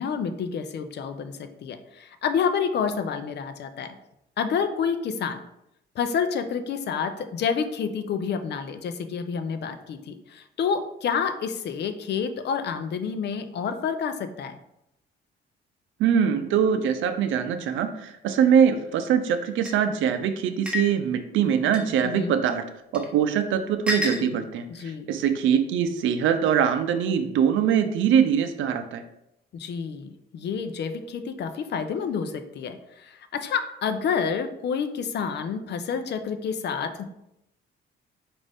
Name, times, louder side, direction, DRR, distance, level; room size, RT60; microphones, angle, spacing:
voice 1, 0.0-3.9 4.4-5.4 6.0-14.6 22.0-22.4 24.7-25.1 29.5-37.0, left 6 dB, 60° left, 9 dB, 0.5 m, -29 dB
voice 2, 16.0-22.6 22.9-29.0, right 8 dB, 80° right, 8 dB, 0.5 m, -23 dB
sound 1, 19.7-19.8 20.7-20.9 21.7-21.9 22.9-23.1 23.9-24.2, left 2 dB, 5° right, 0.9 m, -28 dB
5.1 x 2.6 x 3.4 m, 0.82 s
cardioid pair, 90°, 20 cm